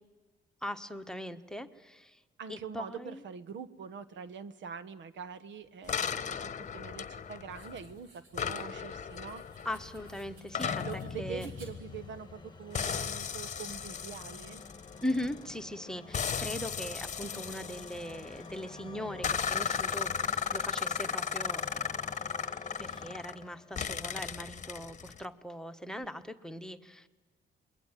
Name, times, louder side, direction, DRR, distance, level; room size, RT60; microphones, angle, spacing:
voice 1, 0.6-2.2 2.5-3.2 8.6-8.8 9.6-11.5 15.0-21.9 22.8-27.1, left 1 dB, 5° left, 7 dB, 1.4 m, -40 dB
voice 2, 2.4-9.4 10.6-14.6, right 6 dB, 70° right, 13 dB, 1.3 m, -44 dB
sound 1, 5.9-7.9 8.3-12.4 12.7-15.5 16.1-18.6 19.2-23.4 23.8-25.2, left 7 dB, 40° left, 1.1 m, -36 dB
sound 2, 7.5-13.2, right 3 dB, 85° right, 4.4 m, -61 dB
sound 3, 8.2-24.3, left 4 dB, 20° left, 1.3 m, -49 dB
28.0 x 22.0 x 9.2 m, 1.2 s
cardioid pair, 90°, 20 cm